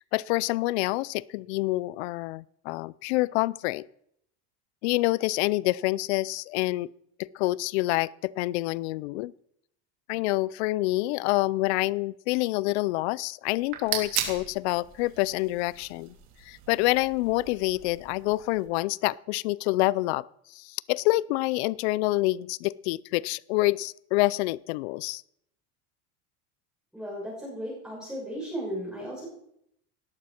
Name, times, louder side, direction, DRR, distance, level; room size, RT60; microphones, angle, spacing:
voice 1, 0.0-3.9 4.8-6.9 7.2-9.3 10.1-16.1 16.4-25.2, left 19 dB, 75° left, 22 dB, 0.5 m, -27 dB
sound 1, 13.5-18.7, right 10 dB, 55° right, 3.6 m, -37 dB
voice 2, 26.9-29.2, equal, ahead, -6 dB, 6.5 m, -35 dB
18.5 x 12.5 x 4.4 m, 0.74 s
supercardioid pair, 145°, 34 cm